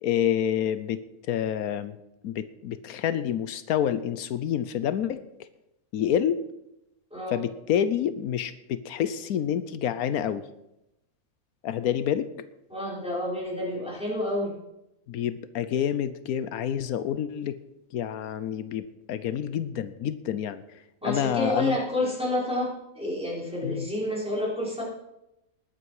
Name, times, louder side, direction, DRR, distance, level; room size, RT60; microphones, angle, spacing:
voice 1, 0.0-1.0 1.3-2.0 2.2-5.2 5.9-6.4 7.3-10.4 11.6-12.3 15.1-17.6 17.9-20.6 21.0-21.8 23.6-23.9, left 9 dB, 85° left, 13 dB, 1.2 m, -28 dB
voice 2, 7.1-7.4 12.7-14.5 21.0-24.8, left 1 dB, 5° right, -6 dB, 5.0 m, -29 dB
20.0 x 8.6 x 4.8 m, 0.87 s
omnidirectional pair, 1.5 m